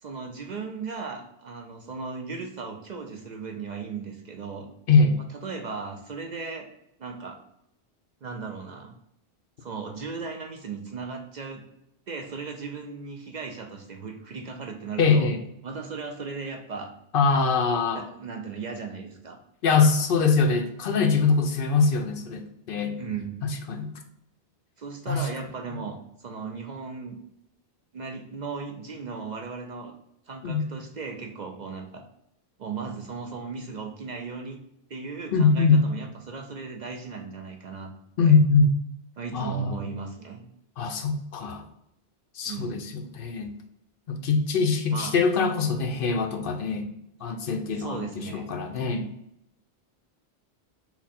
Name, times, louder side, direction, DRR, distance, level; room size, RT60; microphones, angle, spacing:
voice 1, 0.0-4.7 5.3-6.7 7.0-7.4 8.2-8.9 9.6-11.6 12.1-15.3 15.6-16.9 17.9-19.4 23.0-23.4 24.8-27.2 27.9-29.9 30.3-32.0 32.6-34.6 34.9-37.9 38.2-38.4 39.2-40.4 42.5-42.9 44.9-45.1 47.7-48.5, right 4 dB, 55° right, 4 dB, 0.6 m, -36 dB
voice 2, 4.9-5.2 15.0-15.4 17.1-18.0 19.6-22.9 23.7-23.9 25.1-25.2 30.4-30.6 35.3-35.8 38.2-38.7 39.3-39.7 40.8-41.6 42.4-43.5 44.1-46.9 47.2-49.1, left 4 dB, 65° left, 5 dB, 0.8 m, -23 dB
5.9 x 2.2 x 4.1 m, 0.78 s
omnidirectional pair, 1.1 m